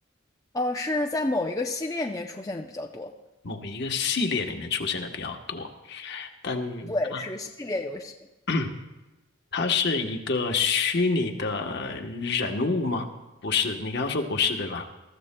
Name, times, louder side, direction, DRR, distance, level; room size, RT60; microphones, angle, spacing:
voice 1, 0.5-3.1 6.9-8.1, left 2 dB, 15° left, 2 dB, 0.5 m, -29 dB
voice 2, 3.4-7.2 8.5-8.7 9.5-13.1 13.4-14.9, left 4 dB, 55° left, 4 dB, 1.1 m, -27 dB
21.5 x 14.0 x 2.2 m, 1.0 s
head